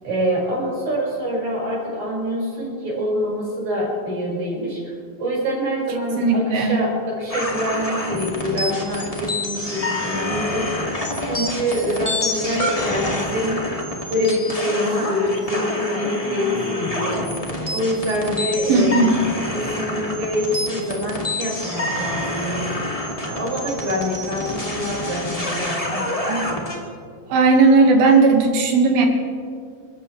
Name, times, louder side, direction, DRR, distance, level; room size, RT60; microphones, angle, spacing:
voice 1, 0.0-4.9 5.2-10.7 11.2-13.6 14.1-17.3 17.7-19.1 19.5-22.7 23.2-26.5, equal, 50° right, -5 dB, 7.0 m, -25 dB
voice 2, 6.2-6.8 18.7-19.1 27.3-29.1, right 3 dB, 80° right, 2 dB, 3.7 m, -15 dB
sound 1, 7.3-26.8, left 1 dB, 15° left, 1.4 m, -27 dB
28.5 x 14.0 x 3.3 m, 2.1 s
omnidirectional pair, 4.3 m